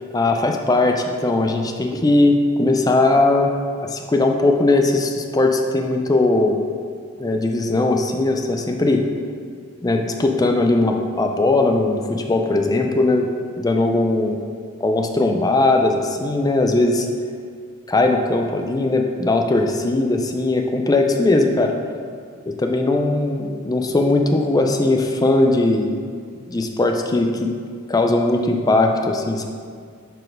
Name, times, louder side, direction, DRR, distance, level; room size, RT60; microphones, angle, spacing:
voice 1, 0.1-3.5 3.8-6.6 7.2-9.0 9.8-13.3 13.6-14.4 14.8-17.1 17.9-21.7 22.5-25.9 26.5-27.5 27.9-29.4, left 2 dB, 15° left, 3 dB, 0.4 m, -19 dB
6.7 x 4.2 x 4.9 m, 2.1 s
head